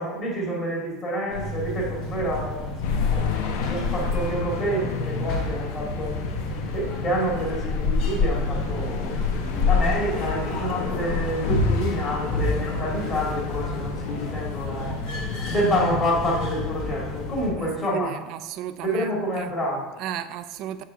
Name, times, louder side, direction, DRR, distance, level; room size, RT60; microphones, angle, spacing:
voice 1, 0.0-2.6 3.1-6.1 6.7-9.2 9.4-18.1 18.8-19.9, equal, 30° left, -3 dB, 2.0 m, -28 dB
sound 1, 1.3-17.5, left 3 dB, 50° left, 1.5 m, -28 dB
sound 2, 2.8-15.4, left 4 dB, 80° left, 0.9 m, -34 dB
voice 2, 17.6-19.6 20.0-20.8, right 11 dB, 45° right, 10 dB, 0.4 m, -34 dB
6.6 x 4.6 x 6.1 m, 1.2 s
cardioid pair, 170°, 0 cm